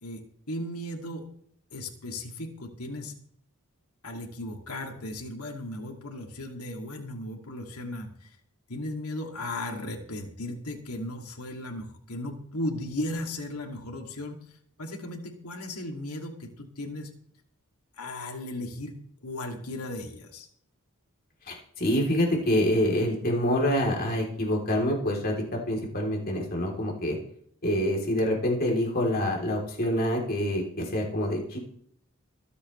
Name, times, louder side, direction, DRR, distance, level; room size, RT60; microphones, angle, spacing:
voice 1, 0.0-1.2 1.7-3.1 4.0-8.3 8.7-17.1 18.0-20.5, left 1 dB, 85° left, 2 dB, 2.6 m, -36 dB
voice 2, 21.5-27.2 27.6-31.6, left 1 dB, 45° left, 0 dB, 3.5 m, -26 dB
25.5 x 8.5 x 3.3 m, 0.66 s
head